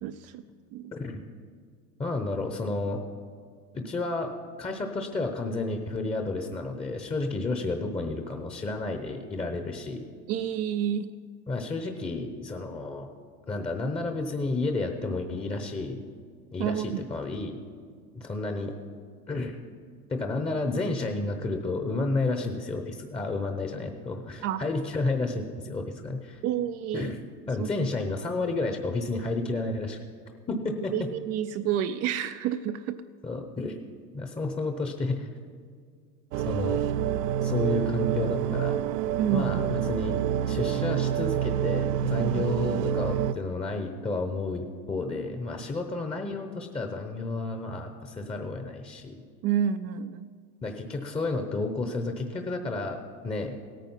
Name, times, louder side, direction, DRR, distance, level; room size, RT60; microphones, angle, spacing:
voice 1, 0.0-0.4 0.7-0.9 10.3-11.1 16.6-17.0 24.4-24.7 26.4-27.1 27.6-27.7 30.9-33.0 39.2-39.6 42.2-42.4 49.4-50.3, right 9 dB, 35° right, 10 dB, 0.4 m, -29 dB
voice 2, 0.9-1.2 2.0-3.0 3.7-4.3 4.6-10.0 11.5-13.1 13.4-16.1 16.5-17.6 18.1-18.7 19.3-19.6 20.1-26.4 26.9-27.2 27.5-30.0 30.5-31.1 33.2-33.8 34.1-35.3 36.4-36.8 37.4-38.8 39.3-40.2 40.5-49.2 50.6-53.6, left 2 dB, 10° left, 5 dB, 0.8 m, -31 dB
sound 1, 36.3-43.3, right 10 dB, 85° right, 0.6 m, -27 dB
17.0 x 9.2 x 5.6 m, 2.1 s
hypercardioid pair, 110°, 48 cm